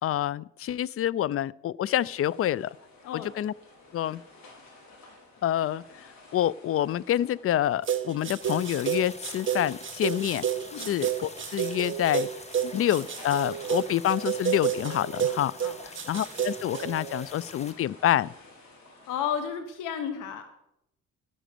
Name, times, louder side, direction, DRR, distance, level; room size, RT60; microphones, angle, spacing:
voice 1, 0.0-2.8 3.1-3.5 3.9-4.2 5.4-6.1 6.3-10.4 10.8-12.3 12.6-15.5 16.1-18.3, left 12 dB, 50° left, 23 dB, 0.5 m, -27 dB
sound 1, 1.8-19.4, left 2 dB, 65° left, 4.8 m, -54 dB
sound 2, 7.8-17.2, right 9 dB, 40° right, 1.7 m, -30 dB
sound 3, 8.4-17.7, left 2 dB, 20° left, 1.5 m, -45 dB
voice 2, 19.1-20.4, left 8 dB, 90° left, 8 dB, 1.2 m, -32 dB
12.5 x 9.1 x 6.8 m, 0.80 s
cardioid pair, 90°, 30 cm